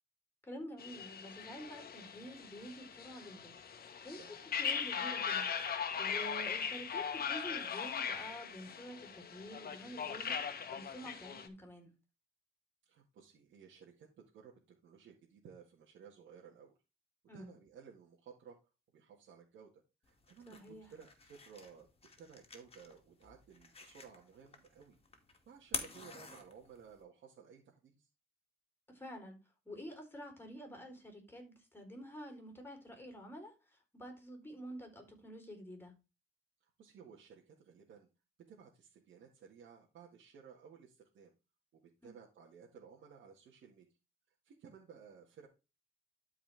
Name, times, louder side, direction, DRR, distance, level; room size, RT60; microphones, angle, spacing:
voice 1, 0.4-3.5 4.0-4.2 4.6-5.5 6.0-10.4 10.7-11.9 17.3-17.5 20.5-20.9 28.9-29.4 29.6-35.9 42.0-42.1, equal, 10° left, 4 dB, 4.0 m, -49 dB
sound 1, 0.8-11.5, left 7 dB, 50° left, 1.4 m, -39 dB
voice 2, 12.9-16.8 17.3-18.6 18.9-21.9 22.2-25.0 25.5-28.1 36.6-38.1 38.5-41.3 41.7-43.9 44.4-45.5, right 6 dB, 70° right, -2 dB, 2.0 m, -57 dB
sound 2, 20.0-27.0, left 3 dB, 30° left, 2.4 m, -48 dB
12.0 x 4.9 x 3.5 m, 0.28 s
cardioid pair, 90°, 20 cm